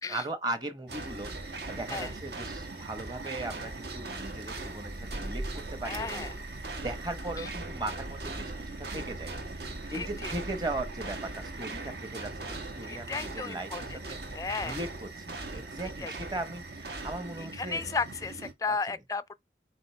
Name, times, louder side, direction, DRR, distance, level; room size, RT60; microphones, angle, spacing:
voice 1, 0.1-6.3 6.8-8.5 8.8-9.3 9.6-14.2 14.6-18.0 18.7-18.8, right 2 dB, 25° right, 1.0 m, -38 dB
sound 1, 0.9-18.5, right 2 dB, 70° right, 1.4 m, -40 dB
sound 2, 4.4-11.8, right 1 dB, 90° right, 1.1 m, -43 dB
voice 2, 5.8-6.3 6.7-6.8 7.4-7.5 9.9-10.3 12.9-14.0 14.3-14.8 16.0-16.1 17.4-19.3, left 4 dB, 20° left, 0.3 m, -34 dB
7.6 x 2.7 x 4.6 m
head